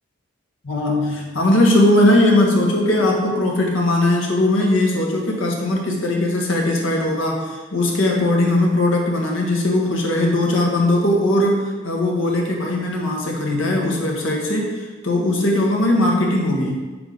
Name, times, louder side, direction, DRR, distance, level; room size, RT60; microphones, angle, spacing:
voice 1, 0.6-16.8, left 1 dB, 70° left, -1 dB, 1.7 m, -19 dB
8.1 x 6.8 x 4.0 m, 1.3 s
head